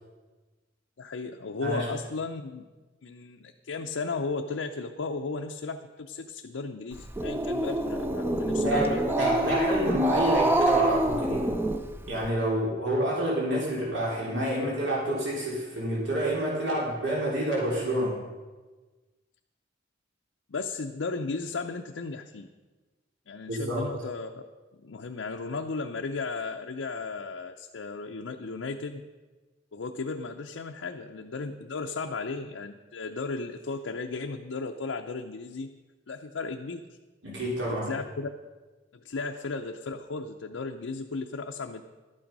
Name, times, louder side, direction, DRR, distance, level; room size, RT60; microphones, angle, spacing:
voice 1, 1.0-2.6 3.0-9.4 9.7-9.8 20.5-22.5 23.3-24.4 24.7-29.0 29.7-35.7 36.1-36.9 37.7-38.3 38.9-41.8, left 4 dB, 85° left, 3 dB, 0.6 m, -35 dB
Growling, 6.9-12.3, right 1 dB, 10° right, 0.5 m, -26 dB
voice 2, 8.5-11.5 12.1-18.2 23.5-23.8 37.2-37.9, right 1 dB, 70° right, -5 dB, 3.5 m, -28 dB
12.0 x 8.8 x 5.3 m, 1.3 s
head